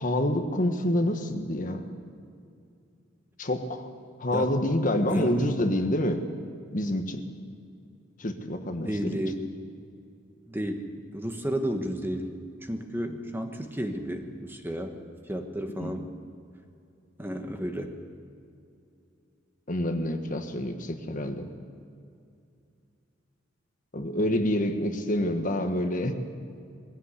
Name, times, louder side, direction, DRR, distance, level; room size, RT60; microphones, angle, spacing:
voice 1, 0.0-1.9 3.4-3.9 4.2-6.2 6.7-7.2 8.2-9.2 15.8-15.9 19.7-21.5 23.9-26.1, left 1 dB, 45° left, 6 dB, 1.5 m, -27 dB
voice 2, 5.1-5.4 8.8-9.5 10.5-12.3 12.6-15.0 15.3-16.1 17.2-18.0, equal, 10° right, 4 dB, 1.4 m, -32 dB
21.5 x 15.5 x 8.3 m, 2.5 s
head